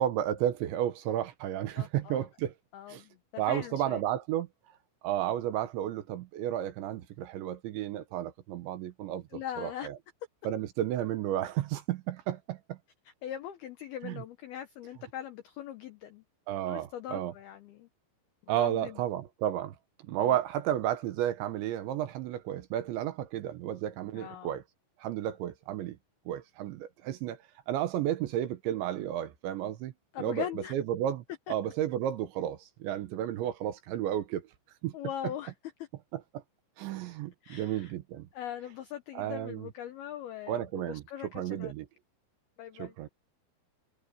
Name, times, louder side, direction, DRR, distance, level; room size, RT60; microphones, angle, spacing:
voice 1, 0.0-2.5 2.9-3.0 3.4-4.5 5.0-10.0 10.4-12.8 14.0-14.2 16.5-17.3 18.5-19.7 20.1-24.6 25.0-26.0 26.3-27.4 27.7-29.9 30.2-34.5 34.8-34.9 36.1-36.4 36.8-38.3 39.2-39.7 40.5-41.0 41.3-41.9 42.7-43.1, right 11 dB, 70° right, 3.2 m, -32 dB
voice 2, 1.7-2.3 2.7-4.0 9.3-9.9 13.1-16.2 16.7-17.9 18.4-19.0 20.2-20.4 24.1-24.6 30.1-30.7 34.9-35.5 37.4-37.9 38.3-41.7 42.6-43.0, left 11 dB, 80° left, 2.2 m, -41 dB
omnidirectional pair, 5.9 m